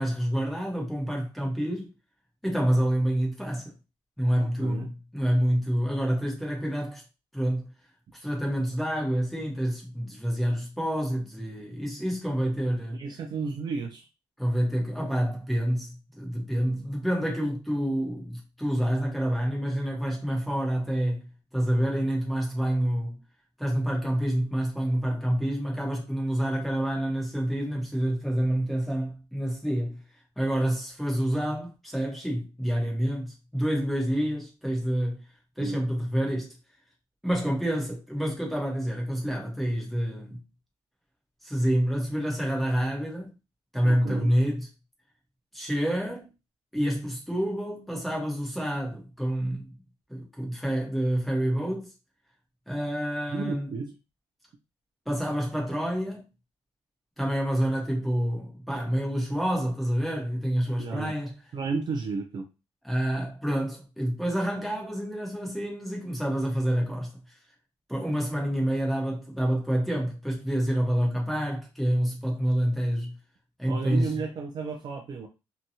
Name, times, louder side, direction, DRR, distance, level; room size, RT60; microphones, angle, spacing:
voice 1, 0.0-1.9 2.4-3.7 4.2-7.0 7.3-7.7 8.2-13.0 14.4-15.9 16.2-23.2 23.6-30.0 30.4-35.2 35.6-36.5 37.2-40.4 41.4-43.3 43.7-44.7 45.5-46.3 46.7-49.7 50.1-51.9 52.7-53.7 55.1-56.2 57.2-61.3 62.8-67.1 67.9-73.1 73.6-74.1, equal, ahead, 0.9 m, -28 dB
voice 2, 4.4-4.9 12.9-14.1 35.6-35.8 43.8-44.3 53.3-54.0 60.8-61.1 61.5-62.5 73.6-75.3, right 4 dB, 40° right, 0.4 m, -33 dB
2.8 x 2.2 x 2.7 m
cardioid pair, 145°, 11 cm